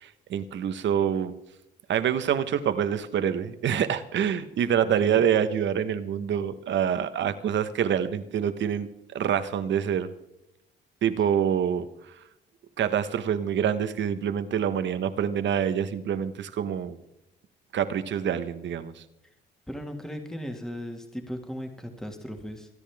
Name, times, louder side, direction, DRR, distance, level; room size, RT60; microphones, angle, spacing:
voice 1, 0.0-1.3 1.9-8.9 9.1-10.1 11.0-11.9 12.8-17.0 17.7-18.9, right 8 dB, 65° right, 11 dB, 1.2 m, -26 dB
voice 2, 4.8-5.2 19.7-22.7, equal, 5° left, 4 dB, 2.0 m, -37 dB
26.5 x 10.0 x 3.5 m, 0.86 s
cardioid pair, 90°, 20 cm